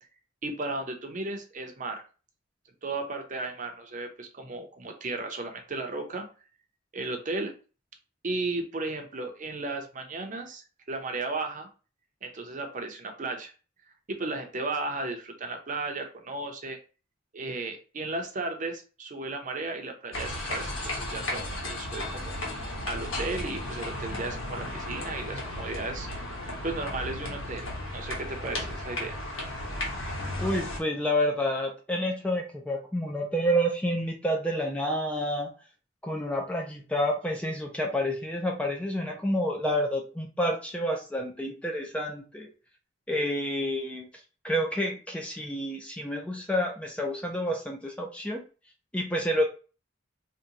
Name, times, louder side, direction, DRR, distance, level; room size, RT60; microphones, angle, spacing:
voice 1, 0.4-2.0 2.8-6.2 6.9-7.5 8.2-11.7 12.2-13.5 14.1-16.8 17.3-22.4 22.8-26.1 26.6-29.2, right 3 dB, 40° right, 4 dB, 0.6 m, -35 dB
sound 1, 20.1-30.8, left 1 dB, 85° left, 1.2 m, -34 dB
voice 2, 30.4-35.5 36.0-42.5 43.1-44.1 44.4-48.4 48.9-49.4, equal, 5° left, 2 dB, 0.3 m, -29 dB
2.8 x 2.2 x 3.7 m, 0.35 s
head